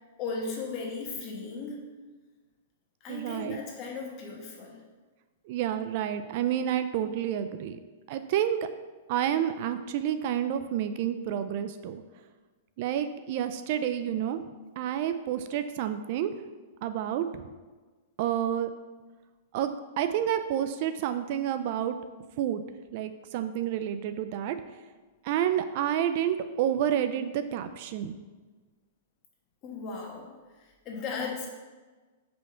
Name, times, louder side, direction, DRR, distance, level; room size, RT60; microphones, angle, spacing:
voice 1, 0.2-1.8 3.0-4.8 29.6-30.3 30.6-31.5, left 4 dB, 35° left, -1 dB, 1.3 m, -36 dB
voice 2, 3.1-3.6 5.5-7.8 8.1-8.6 9.1-12.0 12.8-14.4 14.8-16.3 16.8-17.5 18.2-18.7 19.5-22.0 22.4-22.6 22.9-24.6 25.2-28.1, right 10 dB, 50° right, 10 dB, 0.3 m, -29 dB
5.1 x 3.5 x 5.6 m, 1.3 s
hypercardioid pair, 150°, 0 cm